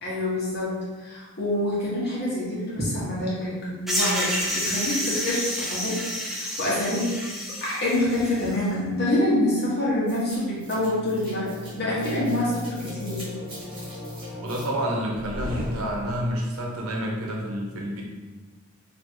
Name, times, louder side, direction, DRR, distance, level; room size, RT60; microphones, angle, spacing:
voice 1, 0.0-7.1 7.6-13.3, left 1 dB, 50° left, -7 dB, 1.3 m, -26 dB
sound 1, 3.9-8.6, equal, ahead, 0.5 m, -29 dB
sound 2, 10.1-16.4, left 1 dB, 25° right, 1.3 m, -36 dB
voice 2, 14.3-18.0, equal, 90° right, -2 dB, 0.9 m, -29 dB
3.2 x 2.7 x 4.4 m, 1.3 s
head